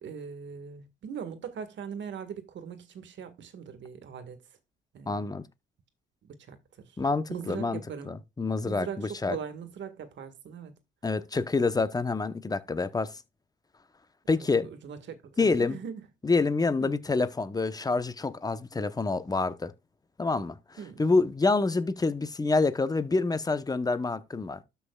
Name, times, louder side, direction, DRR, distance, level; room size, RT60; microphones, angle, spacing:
voice 1, 0.0-4.4 4.9-5.3 6.3-6.9 7.3-8.1 8.6-10.8 14.3-15.0 15.3-16.0 16.8-16.9 20.8-21.0, right 7 dB, 65° right, 1.8 m, -40 dB
voice 2, 5.1-5.4 7.0-9.4 11.0-13.1 14.3-14.7 15.4-15.8 16.2-19.7 20.2-20.6 21.0-24.6, left 3 dB, 20° left, 1.0 m, -27 dB
13.0 x 5.7 x 2.4 m
cardioid pair, 90°, 20 cm